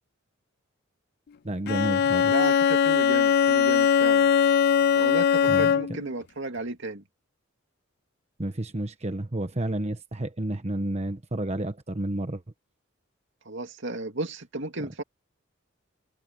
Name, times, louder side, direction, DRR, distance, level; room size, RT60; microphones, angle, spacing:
voice 1, 1.4-2.3 5.5-5.8 8.4-12.4, right 1 dB, 30° right, 1.2 m, -30 dB
Bowed string instrument, 1.7-6.1, left 7 dB, 50° left, 0.4 m, -21 dB
voice 2, 2.3-4.3 4.9-7.0 13.5-15.0, right 2 dB, 60° right, 2.5 m, -34 dB
head